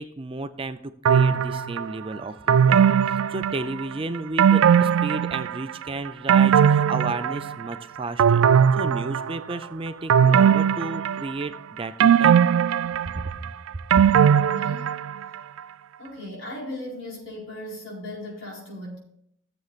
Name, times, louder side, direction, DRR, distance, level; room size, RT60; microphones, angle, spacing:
voice 1, 0.0-8.4 8.7-12.3 13.4-13.5 14.0-14.1, right 2 dB, 25° right, 10 dB, 0.5 m, -33 dB
sound 1, 1.1-1.9 2.5-3.9 4.4-5.7 6.1-7.7 8.2-9.5 10.1-11.5 12.0-15.3 15.6-15.7, right 8 dB, 85° right, 0.3 m, -19 dB
voice 2, 13.9-14.9 16.0-19.0, left 1 dB, 70° left, -3 dB, 4.6 m, -37 dB
16.0 x 7.8 x 2.5 m, 0.72 s
head